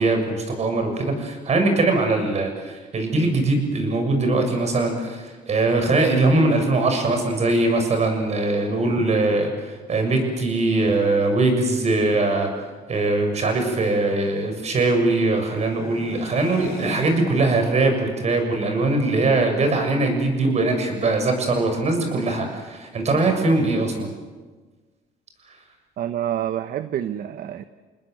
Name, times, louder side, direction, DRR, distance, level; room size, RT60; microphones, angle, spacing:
voice 1, 0.0-12.5 12.9-24.1, right 2 dB, 40° right, 5 dB, 6.8 m, -21 dB
sound 1, 12.7-17.7, left 2 dB, 75° left, 5.8 m, -39 dB
voice 2, 26.0-27.6, right 11 dB, 60° right, 11 dB, 1.0 m, -27 dB
29.0 x 20.0 x 7.8 m, 1.4 s
cardioid pair, 110°, 17 cm